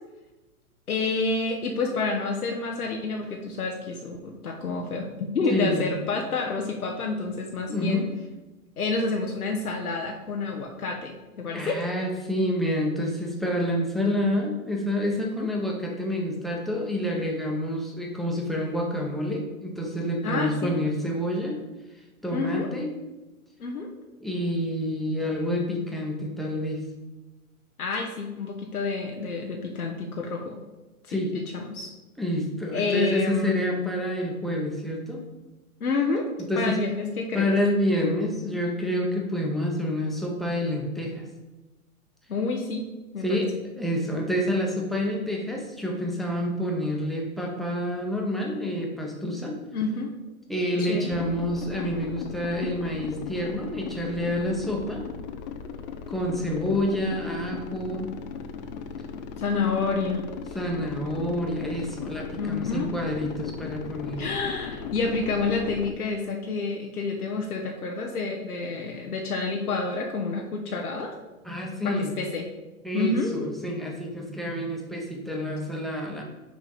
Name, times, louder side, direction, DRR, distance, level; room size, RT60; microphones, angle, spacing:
voice 1, 0.9-8.0 8.8-11.8 15.2-15.5 20.2-20.7 22.3-22.7 23.6-23.9 27.8-30.6 31.1-31.9 32.7-33.9 35.8-36.3 36.6-37.5 42.3-42.8 43.1-43.4 49.7-50.1 50.8-51.1 59.4-60.2 62.4-62.9 64.2-71.1 71.8-72.5 72.9-73.5, left 3 dB, 85° left, 1 dB, 0.9 m, -29 dB
voice 2, 5.5-5.9 7.7-8.1 11.5-21.6 22.2-22.9 24.2-26.8 31.1-31.3 32.2-35.2 36.5-36.8 37.3-41.3 43.2-49.6 50.5-55.1 56.1-58.1 60.5-64.3 71.4-72.1 72.8-76.2, equal, ahead, -1 dB, 0.9 m, -28 dB
sound 1, 51.1-65.9, left 7 dB, 30° left, 0.4 m, -37 dB
6.3 x 3.6 x 5.4 m, 1.1 s
hypercardioid pair, 115°, 43 cm